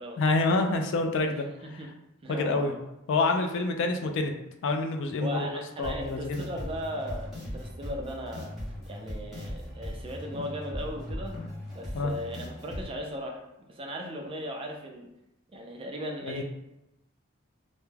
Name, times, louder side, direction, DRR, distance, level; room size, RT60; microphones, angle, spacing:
voice 1, 0.2-1.5 2.3-2.7 3.1-4.3 4.6-6.5 11.9-12.1 16.2-16.4, left 3 dB, 60° left, 5 dB, 0.3 m, -27 dB
voice 2, 2.2-2.8 5.2-8.5 8.9-11.3 11.7-13.4 13.7-15.1 15.5-16.4, equal, 25° right, 1 dB, 0.4 m, -37 dB
sound 1, 5.8-12.8, equal, ahead, 0.8 m, -39 dB
2.2 x 2.1 x 3.1 m, 0.89 s
head